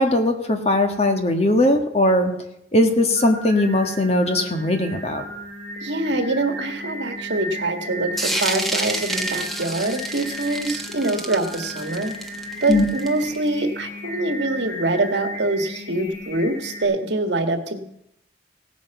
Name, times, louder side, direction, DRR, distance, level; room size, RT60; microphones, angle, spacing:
voice 1, 0.0-2.3 2.7-5.2 12.7-12.9, left 1 dB, 35° left, 5 dB, 1.5 m, -19 dB
Singing, 2.8-16.8, equal, 65° left, 6.7 m, -35 dB
voice 2, 5.8-12.1 12.6-17.8, right 2 dB, 70° right, 7 dB, 1.7 m, -24 dB
sound 1, 8.2-13.5, right 1 dB, ahead, 1.2 m, -29 dB
17.0 x 9.2 x 7.0 m, 0.78 s
head